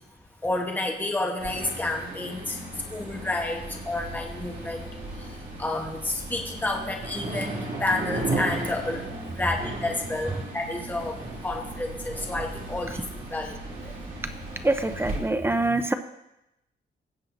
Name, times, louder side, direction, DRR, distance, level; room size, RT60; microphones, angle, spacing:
voice 1, 0.4-2.6 2.9-4.8 5.6-9.0 9.4-13.0 13.3-13.6, left 2 dB, 10° left, 1 dB, 1.0 m, -30 dB
sound 1, 1.4-15.2, right 2 dB, 50° right, 2.5 m, -35 dB
voice 2, 14.6-15.9, right 2 dB, 10° right, 8 dB, 0.4 m, -24 dB
17.0 x 7.6 x 2.5 m, 0.87 s
wide cardioid pair, 165°, 19 cm